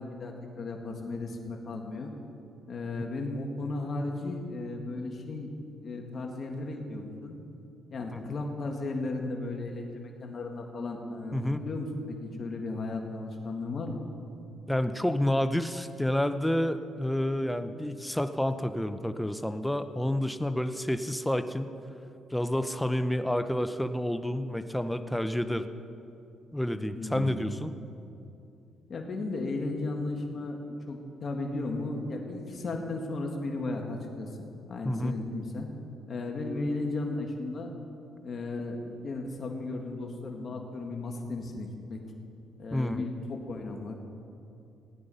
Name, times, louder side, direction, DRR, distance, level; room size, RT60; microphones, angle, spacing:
voice 1, 0.0-2.1 2.7-5.5 5.8-7.3 7.9-14.0 26.9-27.5 28.9-35.7 36.1-37.7 38.2-42.0 42.6-44.0, left 2 dB, 50° left, 2 dB, 2.0 m, -35 dB
voice 2, 11.3-11.6 14.7-21.7 22.3-25.7 26.5-27.7 34.8-35.1 42.7-43.0, left 1 dB, 5° left, 10 dB, 0.7 m, -29 dB
17.0 x 9.7 x 5.6 m, 2.7 s
cardioid pair, 90°, 0 cm